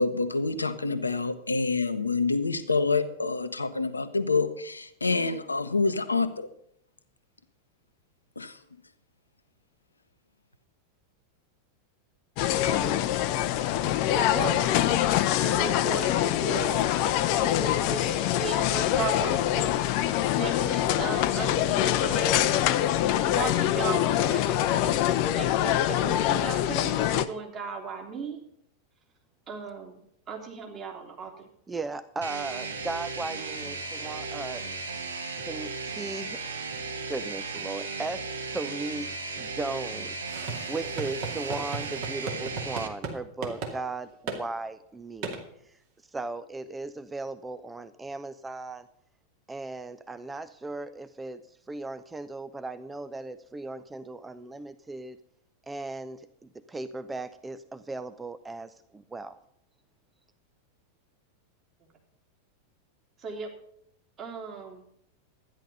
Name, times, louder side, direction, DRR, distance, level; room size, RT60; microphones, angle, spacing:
voice 1, 0.0-6.5 8.4-8.6, left 3 dB, 80° left, 11 dB, 0.9 m, -27 dB
sound 1, 12.4-27.3, left 12 dB, 45° left, 0.7 m, -24 dB
voice 2, 12.6-13.2 14.1-14.7 15.4-17.0 17.3-22.7 22.9-23.1 23.4-28.4 29.5-30.0 30.3-31.5 63.2-63.5 64.2-64.8, right 5 dB, 30° right, 1 dB, 3.0 m, -37 dB
voice 3, 31.7-34.6 35.4-36.6 37.1-45.4 46.1-48.9 49.5-55.2 55.7-59.4, right 3 dB, 10° right, 13 dB, 0.5 m, -37 dB
sound 2, 32.2-42.9, right 4 dB, 70° right, 1.4 m, -36 dB
sound 3, 40.3-43.2 43.4-43.7 44.3-44.4 45.2-45.4, right 4 dB, 45° right, 2.4 m, -36 dB
13.0 x 10.5 x 5.4 m, 0.72 s
figure-of-eight pair, 90°, 0 cm